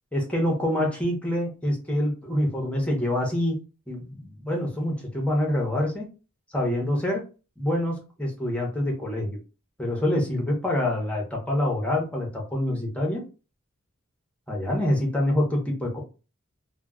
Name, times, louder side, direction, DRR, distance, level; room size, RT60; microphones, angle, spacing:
voice 1, 0.1-3.6 3.9-6.0 6.5-7.2 7.6-9.4 9.8-13.2 14.5-16.0, left 1 dB, 5° left, -1 dB, 0.7 m, -26 dB
2.2 x 2.1 x 3.5 m, 0.32 s
head